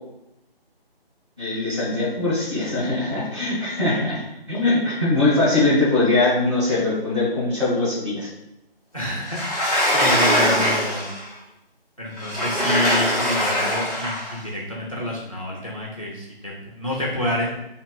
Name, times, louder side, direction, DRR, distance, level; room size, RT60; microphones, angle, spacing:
voice 1, 1.4-4.2 4.5-8.3, left 2 dB, 30° right, -7 dB, 1.3 m, -21 dB
voice 2, 8.9-9.4 9.9-11.1 12.0-17.6, left 1 dB, 35° left, -4 dB, 0.6 m, -28 dB
Sliding door, 9.3-11.2 12.2-14.3, equal, 15° left, 1.0 m, -22 dB
5.8 x 2.9 x 2.2 m, 0.89 s
figure-of-eight pair, 180°, 31 cm